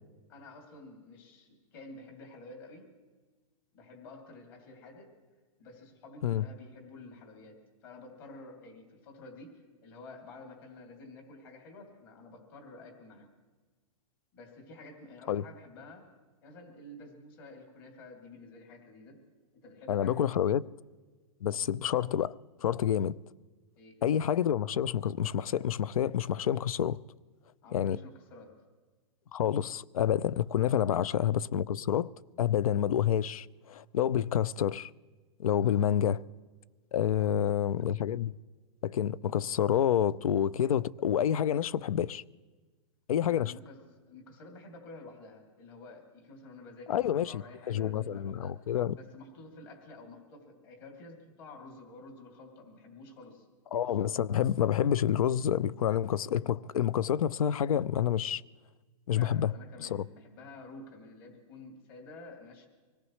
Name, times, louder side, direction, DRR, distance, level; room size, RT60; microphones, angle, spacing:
voice 1, 0.3-2.9 3.7-5.1 5.6-13.3 14.3-16.1 16.4-19.2 19.5-20.3 23.8-24.0 27.6-28.5 30.9-31.0 35.6-36.0 37.1-37.6 43.3-48.6 48.9-53.5 59.1-62.7, left 2 dB, 40° left, 2.9 m, -50 dB
voice 2, 19.9-20.6 21.4-22.3 22.6-23.2 24.0-27.0 27.7-28.0 29.3-32.1 32.4-34.9 35.4-36.2 36.9-38.3 38.8-42.2 43.1-43.5 46.9-49.0 53.7-58.4 59.1-59.5 59.8-60.0, left 10 dB, 85° left, 0.5 m, -28 dB
25.0 x 18.0 x 3.2 m
hypercardioid pair, 170°, 18 cm